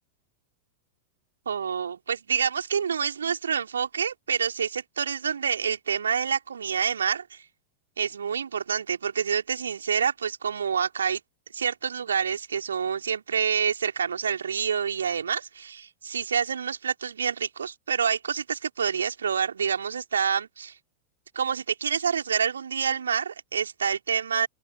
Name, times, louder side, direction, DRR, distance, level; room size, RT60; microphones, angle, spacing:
voice 1, 1.5-7.4 8.0-11.2 11.5-20.7 21.3-24.5, right 7 dB, 70° right, 4.0 m, -27 dB
open air
figure-of-eight pair, 90°, 0 cm